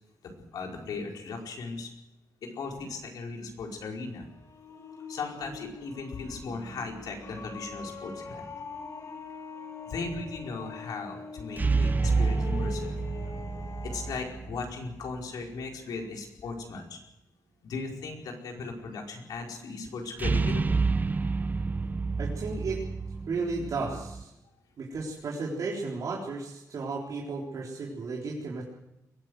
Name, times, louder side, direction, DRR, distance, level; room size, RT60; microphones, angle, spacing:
voice 1, 0.2-1.9 2.4-4.3 5.1-8.4 9.8-13.0 13.8-17.0 17.6-20.8, left 4 dB, 90° left, 1 dB, 4.8 m, -37 dB
sound 1, 3.9-14.4, left 5 dB, 50° left, 2.6 m, -43 dB
sound 2, 6.5-7.4 11.6-15.2 20.2-24.2, right 4 dB, 25° right, 0.8 m, -29 dB
voice 2, 22.2-22.8 23.3-24.3 24.8-28.6, right 4 dB, 65° right, -4 dB, 4.0 m, -34 dB
22.5 x 16.0 x 8.0 m, 0.88 s
cardioid pair, 110°, 6 cm